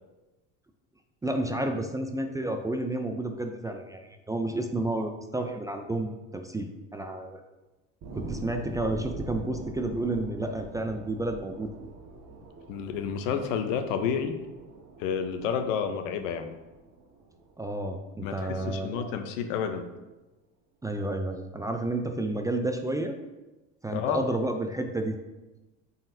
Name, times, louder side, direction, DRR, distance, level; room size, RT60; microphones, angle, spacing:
voice 1, 1.2-7.4 8.1-11.7 17.6-19.1 20.8-23.2 23.8-25.2, right 2 dB, 10° right, 5 dB, 0.4 m, -31 dB
sound 1, 8.0-19.0 19.5-19.6, right 3 dB, 45° right, 1.4 m, -44 dB
voice 2, 12.7-14.4 15.0-16.5 18.2-19.9 23.9-24.4, left 7 dB, 80° left, 8 dB, 0.8 m, -30 dB
8.6 x 4.1 x 2.7 m, 1.1 s
supercardioid pair, 95°, 38 cm